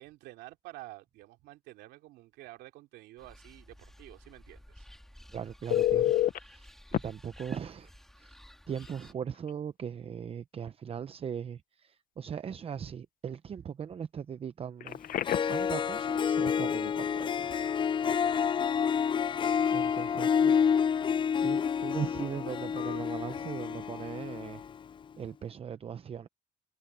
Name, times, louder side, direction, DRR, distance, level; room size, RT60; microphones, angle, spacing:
voice 1, 0.0-4.9 18.1-18.6 20.0-20.8, right 17 dB, 90° right, 2.9 m, -50 dB
sound 1, 3.2-9.1, equal, ahead, 2.8 m, -53 dB
voice 2, 5.3-6.1 6.4-7.9 8.2-8.4 8.7-15.0 15.5-17.5 19.7-20.6 21.4-24.6 25.2-26.3, right 8 dB, 35° right, 0.7 m, -39 dB
Telephone, 5.7-6.4 6.9-7.0 8.8-8.9 9.3-9.5 14.8-15.6 22.8-23.0, left 13 dB, 55° left, 0.9 m, -28 dB
Harp, 15.0-15.1 15.2-24.8, left 7 dB, 30° left, 0.4 m, -29 dB
cardioid pair, 110°, 17 cm